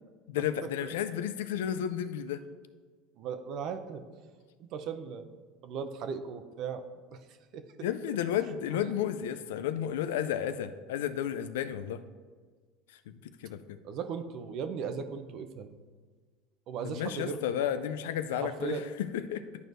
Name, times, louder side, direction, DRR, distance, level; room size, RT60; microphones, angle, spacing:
voice 1, 0.3-2.4 7.8-12.0 13.1-13.8 16.8-19.5, left 10 dB, 80° left, 11 dB, 0.4 m, -32 dB
voice 2, 3.2-4.0 4.6-5.3 5.6-6.8 7.1-7.9 8.8-8.9 13.8-15.8 16.7-17.4 18.3-18.8, right 6 dB, 60° right, 8 dB, 0.6 m, -37 dB
11.0 x 4.5 x 2.6 m, 1.5 s
hypercardioid pair, 85°, 0 cm